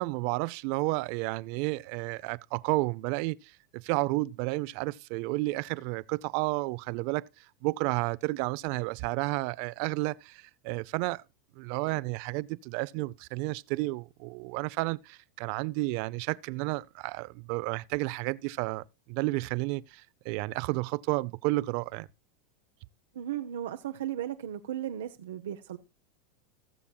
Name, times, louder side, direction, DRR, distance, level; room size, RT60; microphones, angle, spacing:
voice 1, 0.0-11.2 11.6-22.1, right 22 dB, 60° right, 0.5 m, -31 dB
voice 2, 23.1-25.8, right 11 dB, 90° right, 0.8 m, -35 dB
19.0 x 7.1 x 2.3 m
supercardioid pair, 130°, 0 cm